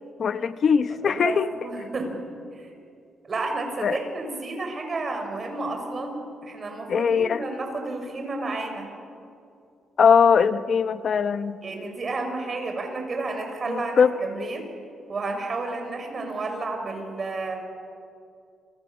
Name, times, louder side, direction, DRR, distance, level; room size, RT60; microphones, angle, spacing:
voice 1, 0.2-1.5 3.8-4.0 6.9-7.4 10.0-11.6 13.7-14.1, left 6 dB, 55° left, 11 dB, 1.2 m, -20 dB
voice 2, 1.0-2.2 2.5-2.7 3.2-8.9 11.6-14.7 15.1-17.6, right 3 dB, 40° right, 4 dB, 6.5 m, -31 dB
29.5 x 26.0 x 7.5 m, 2.5 s
cardioid pair, 105°, 0 cm